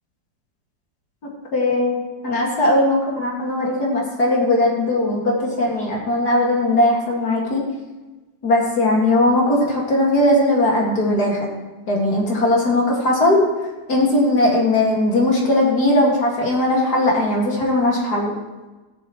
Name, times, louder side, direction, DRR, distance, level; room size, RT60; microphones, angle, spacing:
voice 1, 1.5-7.6 8.4-11.5 11.9-13.4 13.9-18.3, left 1 dB, 65° left, -2 dB, 2.6 m, -19 dB
15.5 x 10.5 x 3.1 m, 1.2 s
omnidirectional pair, 1.9 m